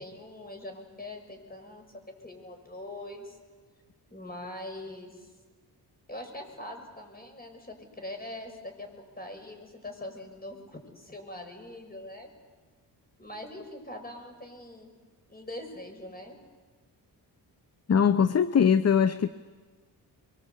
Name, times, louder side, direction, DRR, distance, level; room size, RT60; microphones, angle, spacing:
voice 1, 0.0-1.8 2.2-3.4 4.1-5.3 6.1-8.9 9.1-12.3 13.2-14.9 15.3-16.4, left 1 dB, 20° left, 6.3 m, -42 dB
voice 2, 17.9-19.3, left 7 dB, 35° left, 0.8 m, -21 dB
25.0 x 23.5 x 8.3 m
cardioid pair, 75°, 43 cm